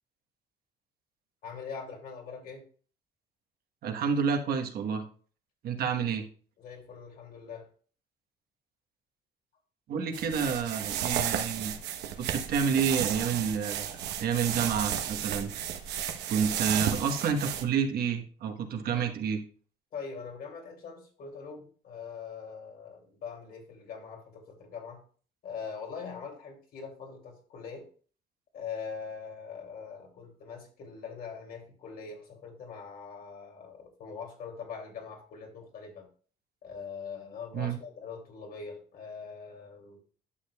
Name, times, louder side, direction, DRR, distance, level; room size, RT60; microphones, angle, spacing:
voice 1, 1.4-2.6 6.6-7.7 19.9-25.0 25.4-27.9 28.5-36.1 36.6-40.0, left 6 dB, 60° left, 1 dB, 2.6 m, -42 dB
voice 2, 3.8-5.0 5.6-6.3 9.9-11.8 12.2-15.5 16.3-19.4 37.5-37.8, right 6 dB, 65° right, 5 dB, 1.2 m, -29 dB
sound 1, 10.1-17.6, right 9 dB, 80° right, 1.0 m, -33 dB
11.5 x 6.7 x 2.3 m, 0.42 s
cardioid pair, 110°, 17 cm